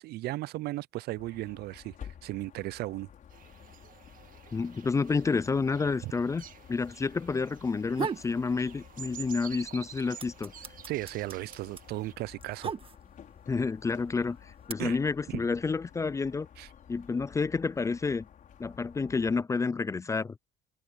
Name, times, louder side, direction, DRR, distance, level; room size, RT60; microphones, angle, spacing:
voice 1, 0.0-2.0 2.2-3.1 6.0-6.1 10.9-12.7 14.8-15.0 15.3-15.4 16.6-16.7, right 17 dB, 70° right, 0.4 m, -35 dB
sound 1, 1.2-19.4, left 8 dB, 50° left, 5.1 m, -52 dB
sound 2, 3.3-12.1, right 9 dB, 55° right, 1.8 m, -50 dB
voice 2, 4.5-10.5 13.5-16.5 16.9-18.3 18.6-20.3, left 4 dB, 20° left, 0.3 m, -29 dB
sound 3, 7.9-8.3 8.7-9.5 9.7-13.3 14.1-14.7, right 6 dB, 35° right, 1.4 m, -36 dB
cardioid pair, 110°, 17 cm